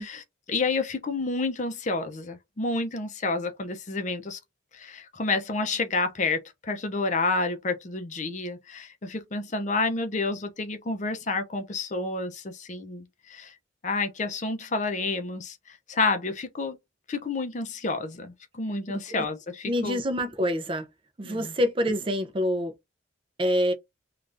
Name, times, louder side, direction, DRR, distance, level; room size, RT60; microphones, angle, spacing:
voice 1, 0.0-4.4 4.7-13.5 13.8-16.8 17.1-20.0 21.2-21.5, left 3 dB, 40° left, 0.5 m, -29 dB
voice 2, 18.9-19.3 19.7-20.9 21.2-22.7 23.4-23.7, equal, 25° right, 0.5 m, -26 dB
3.3 x 2.4 x 2.5 m
head